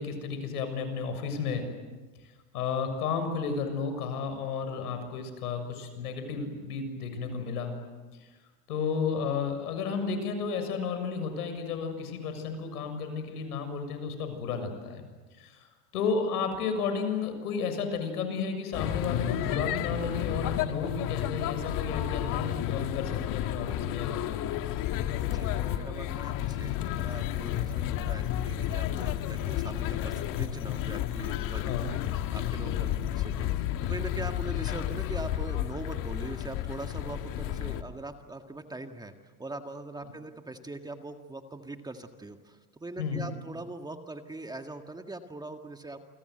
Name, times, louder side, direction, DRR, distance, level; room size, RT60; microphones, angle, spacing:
voice 1, 0.0-1.7 2.5-7.7 8.2-8.3 8.7-15.0 15.4-15.7 15.9-24.4 31.6-31.9 32.6-32.7 43.0-43.3, left 5 dB, 85° left, 7 dB, 6.9 m, -32 dB
sound 1, 18.7-37.8, left 11 dB, 45° left, 1.8 m, -31 dB
voice 2, 25.2-39.1 39.4-46.0, right 2 dB, 10° right, 6 dB, 1.8 m, -42 dB
28.5 x 25.0 x 7.9 m, 1.3 s
supercardioid pair, 120°, 44 cm